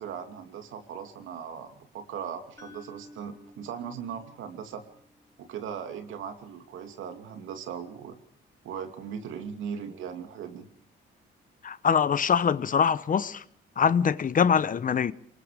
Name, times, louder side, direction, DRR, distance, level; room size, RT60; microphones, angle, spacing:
voice 1, 0.0-4.8 5.4-8.2 8.6-10.7, right 7 dB, 85° right, 2.7 m, -38 dB
sound 1, 2.6-6.6, left 2 dB, 15° left, 5.8 m, -55 dB
voice 2, 11.6-13.4 13.8-15.1, left 7 dB, 40° left, 0.9 m, -23 dB
25.5 x 21.5 x 5.1 m
cardioid pair, 90°, 20 cm